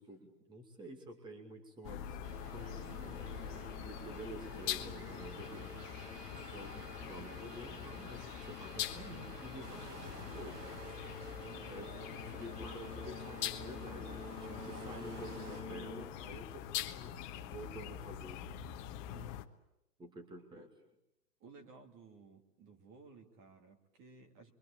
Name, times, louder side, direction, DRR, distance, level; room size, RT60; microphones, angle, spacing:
voice 1, 0.0-2.2 2.5-3.3 3.8-5.9 6.4-10.8 11.7-11.9 12.3-18.5 19.1-19.4 20.0-20.7, right 1 dB, 10° right, 4 dB, 2.5 m, -50 dB
sound 1, 1.8-19.4, left 10 dB, 30° left, 1.3 m, -44 dB
sound 2, 2.2-16.1, equal, 85° right, 4.1 m, -50 dB
sound 3, 9.6-15.6, right 4 dB, 65° right, 6.4 m, -55 dB
voice 2, 11.4-11.9 19.1-19.4 20.5-20.7 21.4-24.5, right 4 dB, 25° right, 5 dB, 2.8 m, -57 dB
27.0 x 24.0 x 8.8 m, 0.86 s
hypercardioid pair, 140°, 47 cm